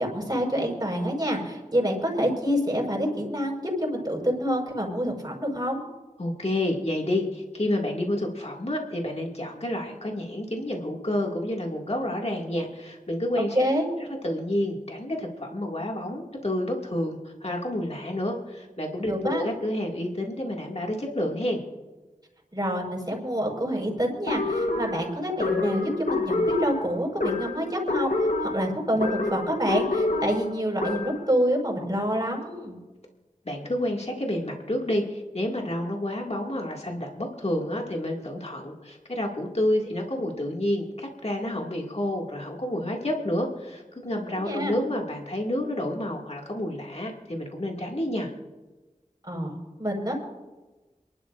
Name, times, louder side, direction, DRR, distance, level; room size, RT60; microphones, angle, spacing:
voice 1, 0.0-5.8 13.5-13.9 19.1-19.5 22.5-32.8 44.4-44.7 49.2-50.1, equal, 30° right, -1 dB, 5.1 m, -27 dB
voice 2, 6.2-13.6 14.2-21.6 33.5-48.3, left 1 dB, 50° left, 0 dB, 2.2 m, -29 dB
sound 1, 24.3-31.3, left 2 dB, 70° left, 1.2 m, -27 dB
28.0 x 12.0 x 2.5 m, 1.2 s
wide cardioid pair, 45°, 14 cm